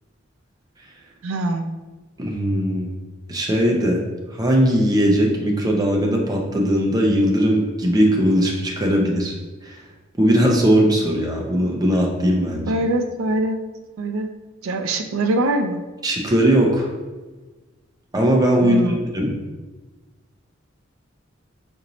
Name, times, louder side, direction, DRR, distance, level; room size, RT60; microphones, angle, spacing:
voice 1, 1.2-1.7 12.7-13.6 14.0-14.3 14.6-15.8 18.6-19.0, right 2 dB, 85° right, 6 dB, 0.4 m, -23 dB
voice 2, 2.2-2.9 3.3-4.0 4.3-9.3 9.6-9.8 10.2-12.7 16.0-16.9 18.1-19.3, equal, 20° right, 0 dB, 0.5 m, -19 dB
4.1 x 2.6 x 2.9 m, 1.2 s
head